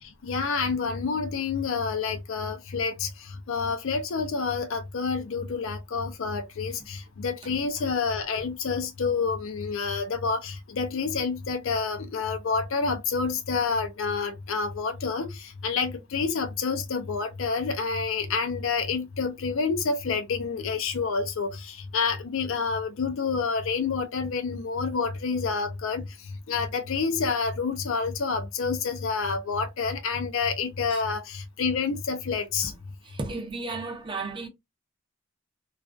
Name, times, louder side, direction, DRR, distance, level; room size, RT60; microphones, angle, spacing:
voice 1, 0.0-26.1 26.5-32.7, left 5 dB, 65° left, 0.4 m, -28 dB
voice 2, 33.0-34.5, right 3 dB, 25° right, 0.6 m, -34 dB
2.4 x 2.3 x 2.3 m
head